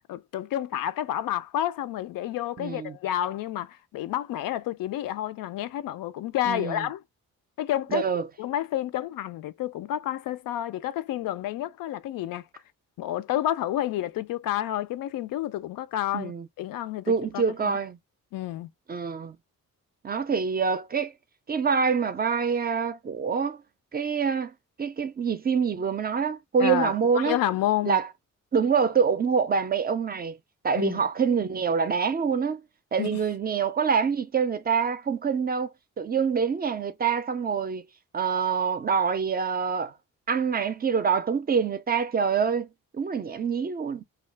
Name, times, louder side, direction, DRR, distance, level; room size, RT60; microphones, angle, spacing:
voice 1, 0.1-7.0 7.6-8.0 8.4-12.4 13.0-16.3 16.6-17.8 18.3-18.7 26.6-28.0 30.7-31.0 33.0-33.2, left 12 dB, 85° left, 0.5 m, -30 dB
voice 2, 2.6-3.0 6.5-6.9 7.9-8.3 16.1-16.5 17.1-18.0 18.9-19.4 20.0-21.1 21.5-23.6 23.9-24.5 24.8-27.4 27.9-28.1 28.5-30.4 30.6-32.6 32.9-35.7 36.0-37.8 38.1-39.9 40.3-42.7 42.9-44.0, right 6 dB, 30° right, 0.4 m, -26 dB
2.3 x 2.3 x 3.3 m
cardioid pair, 95°, 33 cm